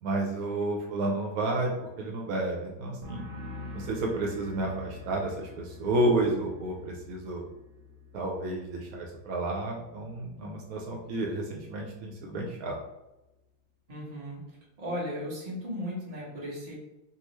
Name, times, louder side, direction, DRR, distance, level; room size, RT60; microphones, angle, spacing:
voice 1, 0.0-1.7 2.0-3.3 3.7-7.4 8.1-12.7, right 2 dB, 80° right, 0 dB, 1.1 m, -31 dB
sound 1, 3.0-10.5 10.8-11.3, left 2 dB, 65° right, 0.8 m, -47 dB
voice 2, 13.9-14.4 14.8-16.7, equal, 30° right, -6 dB, 1.1 m, -36 dB
3.8 x 2.3 x 3.0 m, 0.93 s
omnidirectional pair, 1.5 m